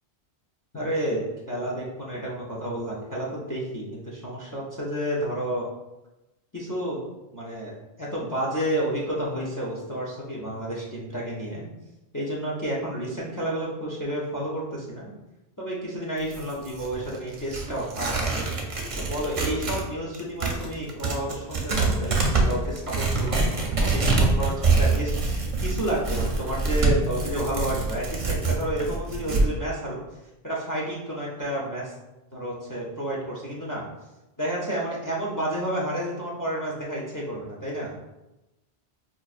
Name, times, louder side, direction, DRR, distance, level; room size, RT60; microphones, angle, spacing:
voice 1, 0.7-5.7 6.5-7.0 7.3-11.7 12.1-15.1 15.6-18.3 19.0-30.0 30.4-31.9 32.3-33.8 34.4-37.9, right 1 dB, 25° left, -5 dB, 0.5 m, -30 dB
Tearing, 16.2-19.9 20.1-29.5, right 3 dB, 40° right, 0.6 m, -25 dB
4.5 x 2.5 x 2.4 m, 0.98 s
omnidirectional pair, 1.1 m